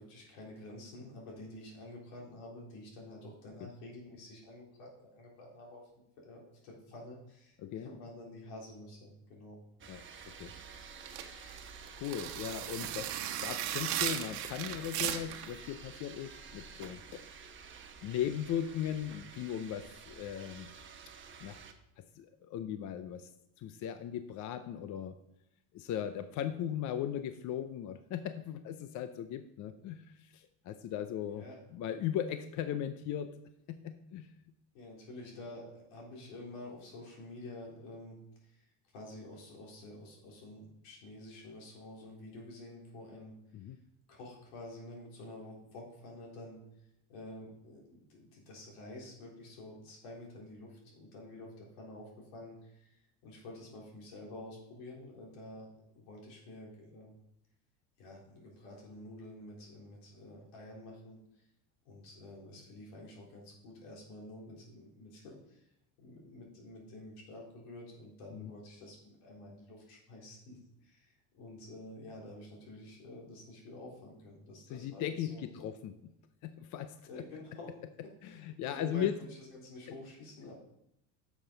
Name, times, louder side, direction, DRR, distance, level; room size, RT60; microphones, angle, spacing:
voice 1, 0.0-5.8 6.2-9.6 31.2-31.6 34.7-38.7 38.9-43.3 44.1-46.6 47.1-55.7 55.9-57.1 58.0-61.4 61.9-65.6 66.0-75.6 77.1-77.7 78.0-80.5, left 1 dB, 75° left, -2 dB, 4.0 m, -49 dB
sound 1, 9.8-21.7, right 5 dB, 25° right, 1.0 m, -50 dB
voice 2, 9.9-10.5 12.0-17.2 18.0-20.7 21.4-21.6 22.0-23.3 23.6-25.2 25.7-31.4 31.7-33.3 33.7-34.3 43.5-43.8 68.3-68.5 74.7-76.0 76.4-77.2 78.2-79.1, left 10 dB, 40° left, 10 dB, 0.6 m, -38 dB
sound 2, 11.0-15.5, right 11 dB, 85° right, 1.2 m, -36 dB
10.0 x 7.1 x 3.9 m, 0.81 s
supercardioid pair, 125°, 47 cm